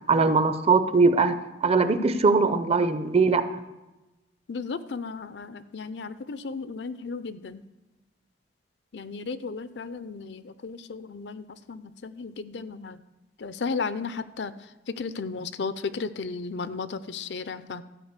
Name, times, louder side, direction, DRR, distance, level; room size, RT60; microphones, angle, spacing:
voice 1, 0.1-1.3 1.6-3.4, right 4 dB, 35° right, 10 dB, 0.7 m, -21 dB
voice 2, 4.5-7.6 8.9-13.0 13.4-14.5 15.0-17.8, left 4 dB, 75° left, 14 dB, 0.5 m, -34 dB
13.5 x 4.9 x 8.2 m, 1.1 s
head